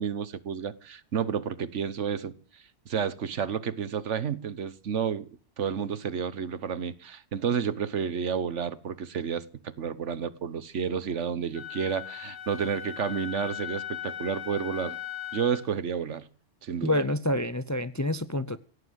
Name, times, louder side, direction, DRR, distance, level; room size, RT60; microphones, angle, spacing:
voice 1, 0.0-2.3 2.9-5.3 5.6-15.0 15.3-16.3 16.6-17.0, right 7 dB, 75° right, 1.4 m, -31 dB
Wind instrument woodwind instrument, 11.5-15.7, left 11 dB, 70° left, 4.4 m, -38 dB
voice 2, 16.8-18.6, left 1 dB, 20° left, 0.6 m, -27 dB
17.0 x 9.7 x 8.0 m
omnidirectional pair, 1.3 m